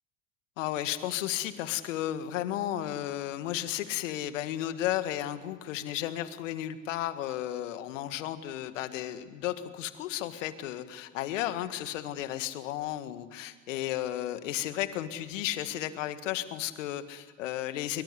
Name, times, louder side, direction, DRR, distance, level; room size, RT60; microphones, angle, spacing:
voice 1, 0.6-18.0, left 13 dB, 70° left, 11 dB, 1.8 m, -33 dB
24.5 x 23.5 x 8.2 m, 1.3 s
hypercardioid pair, 70°, 40 cm